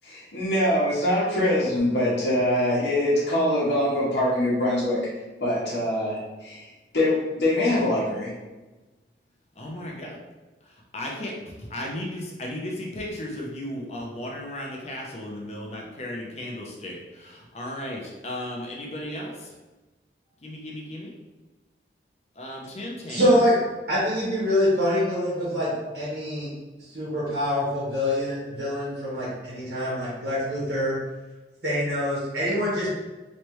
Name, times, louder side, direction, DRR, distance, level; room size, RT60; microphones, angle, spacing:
voice 1, 0.0-5.0 5.4-8.3, left 1 dB, 70° left, -8 dB, 1.2 m, -24 dB
voice 2, 9.6-10.1 10.9-19.5 20.4-21.1 22.4-23.3, left 1 dB, 40° left, -2 dB, 0.7 m, -35 dB
voice 3, 23.1-23.5 23.9-26.5 26.8-30.9 31.6-32.9, equal, 65° right, -8 dB, 1.3 m, -25 dB
3.3 x 3.1 x 3.1 m, 1.1 s
head